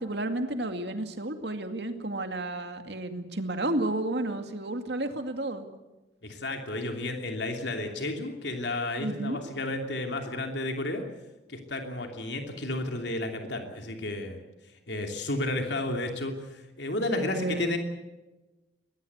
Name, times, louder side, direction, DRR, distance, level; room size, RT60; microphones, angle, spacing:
voice 1, 0.0-5.7 9.0-9.4 17.1-17.8, right 1 dB, 70° right, 6 dB, 2.4 m, -32 dB
voice 2, 6.2-11.1 11.5-14.4 14.9-17.8, left 2 dB, 80° left, 4 dB, 2.9 m, -32 dB
22.5 x 18.5 x 8.2 m, 1.1 s
head